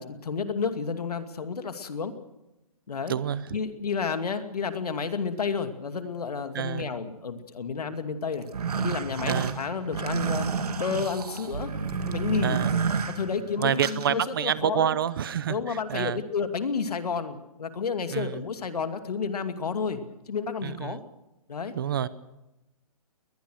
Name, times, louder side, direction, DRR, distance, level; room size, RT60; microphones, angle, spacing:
voice 1, 0.0-2.1 2.9-3.1 3.5-8.5 8.8-10.5 10.8-11.7 12.1-12.6 13.2-15.0 15.5-20.0 20.3-21.0 21.5-21.7, left 5 dB, 85° left, 8 dB, 2.4 m, -31 dB
voice 2, 3.1-3.5 6.5-6.9 9.2-9.6 12.4-12.7 13.6-16.2 18.1-18.4 20.6-21.0 21.7-22.1, right 9 dB, 35° right, 18 dB, 0.8 m, -28 dB
sound 1, 8.4-14.1, right 5 dB, 85° right, 2.2 m, -30 dB
21.5 x 20.5 x 6.4 m, 0.96 s
hypercardioid pair, 170°, 19 cm